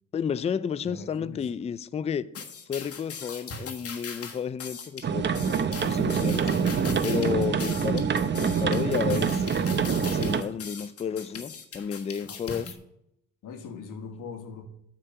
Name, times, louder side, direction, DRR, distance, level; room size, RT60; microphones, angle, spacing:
voice 1, 0.1-2.3 2.7-5.3 5.8-6.5 7.0-8.1 8.4-9.5 10.0-12.7, left 7 dB, 20° left, 0.3 m, -31 dB
voice 2, 0.8-1.5 12.3-12.7 13.4-14.7, left 5 dB, 75° left, 1.6 m, -41 dB
sound 1, 2.3-12.7, left 5 dB, 45° left, 1.4 m, -40 dB
sound 2, 5.0-10.4, right 6 dB, 35° right, 0.8 m, -25 dB
9.9 x 4.6 x 7.6 m
cardioid pair, 105°, 32 cm